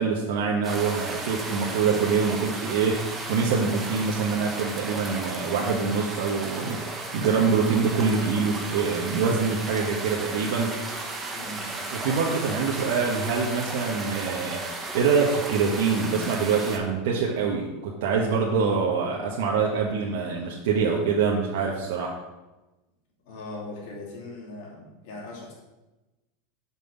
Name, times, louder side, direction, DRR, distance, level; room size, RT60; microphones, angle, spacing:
voice 1, 0.0-11.0 11.9-14.6 14.9-22.1, right 5 dB, 70° right, -2 dB, 1.3 m, -25 dB
sound 1, 0.6-16.8, right 3 dB, 20° right, 1.2 m, -34 dB
voice 2, 1.6-2.0 11.3-11.8 23.2-25.5, left 2 dB, 60° left, -3 dB, 2.9 m, -40 dB
6.0 x 5.6 x 7.1 m, 1.1 s
supercardioid pair, 135°, 0 cm